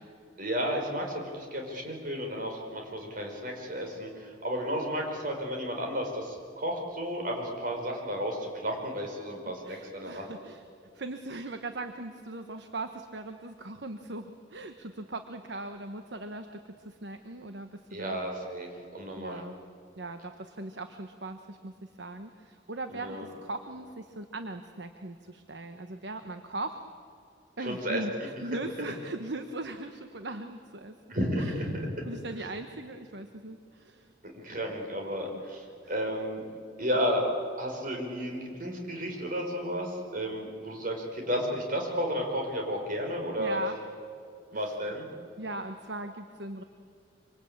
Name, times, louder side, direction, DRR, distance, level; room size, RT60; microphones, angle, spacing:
voice 1, 0.4-10.3 17.9-19.4 22.9-23.3 27.6-28.3 31.1-31.9 34.3-36.4 36.8-37.3 37.6-43.6 44.5-45.1, equal, 45° right, 2 dB, 5.0 m, -33 dB
voice 2, 9.6-10.6 10.9-18.2 19.2-19.6 19.9-26.8 27.6-30.9 31.4-31.6 32.0-34.1 35.3-35.4 35.8-36.0 43.4-43.8 44.5-44.8 45.4-46.6, right 2 dB, 65° right, 7 dB, 1.2 m, -39 dB
25.5 x 25.5 x 8.7 m, 2.3 s
head